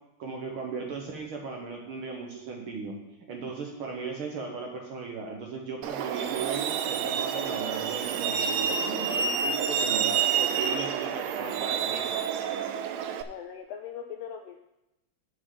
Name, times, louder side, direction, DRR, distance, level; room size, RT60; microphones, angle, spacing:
voice 1, 0.2-2.9 3.3-12.1, right 4 dB, 60° right, 1 dB, 1.5 m, -37 dB
Truck, 5.8-13.2, right 7 dB, 80° right, 1.7 m, -29 dB
voice 2, 13.1-14.6, left 8 dB, 85° left, 4 dB, 1.5 m, -40 dB
6.3 x 6.2 x 7.5 m, 0.93 s
omnidirectional pair, 3.4 m